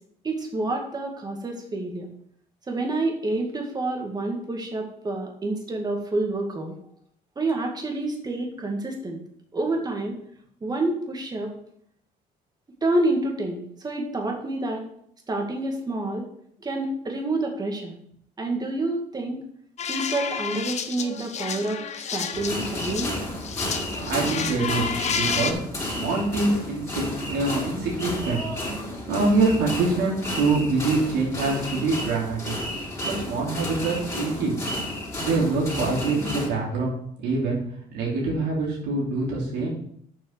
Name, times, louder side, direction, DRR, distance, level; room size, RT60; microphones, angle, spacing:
voice 1, 0.2-2.1 2.7-6.7 7.4-9.2 9.5-10.1 10.6-11.5 12.8-14.8 15.3-16.3 16.6-18.0 18.4-19.4 19.9-23.1, right 2 dB, 25° right, 2 dB, 2.1 m, -28 dB
sound 1, 19.8-23.1 23.4-25.5, left 7 dB, 40° left, 0.9 m, -30 dB
sound 2, 22.3-36.5, left 1 dB, 20° left, 3.6 m, -32 dB
voice 2, 23.8-25.6 26.0-28.4 29.1-32.5 33.0-34.5 35.2-36.9 37.2-37.6 37.9-39.8, right 3 dB, 85° right, -4 dB, 3.1 m, -25 dB
7.5 x 5.5 x 6.8 m, 0.68 s
cardioid pair, 110°, 17 cm